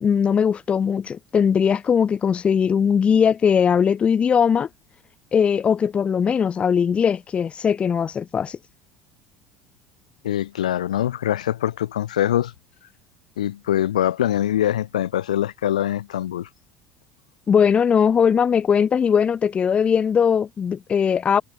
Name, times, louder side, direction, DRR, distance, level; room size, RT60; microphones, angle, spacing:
voice 1, 0.0-4.7 5.3-8.6 17.5-21.4, left 7 dB, 30° left, 0.4 m, -19 dB
voice 2, 10.2-12.5 13.4-16.5, left 11 dB, 90° left, 0.5 m, -23 dB
hypercardioid pair, 80°, 4 cm